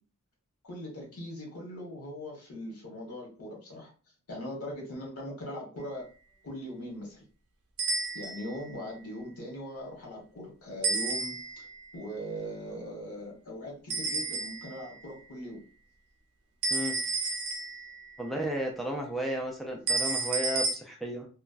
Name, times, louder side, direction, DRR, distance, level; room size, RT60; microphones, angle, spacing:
voice 1, 0.6-3.9 4.3-6.1 6.4-7.2 8.1-11.7 11.9-15.6, equal, 75° left, -2 dB, 1.4 m, -40 dB
sound 1, 7.8-8.6 10.8-11.7 13.9-14.8 16.6-18.1 19.9-20.7, right 3 dB, 80° right, 0.7 m, -31 dB
voice 2, 18.2-21.3, equal, ahead, 0 dB, 0.4 m, -33 dB
3.1 x 2.2 x 2.4 m, 0.36 s
head